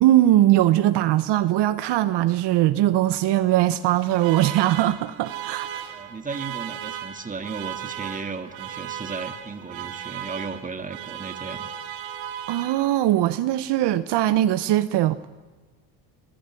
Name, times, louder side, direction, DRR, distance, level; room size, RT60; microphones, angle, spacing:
voice 1, 0.0-5.8 12.5-15.2, right 14 dB, 60° right, 0.9 m, -20 dB
Alarm, 3.8-13.2, right 10 dB, 80° right, 2.6 m, -36 dB
voice 2, 5.9-11.7, right 4 dB, 15° right, 1.8 m, -35 dB
26.0 x 16.0 x 9.1 m
cardioid pair, 115°, 46 cm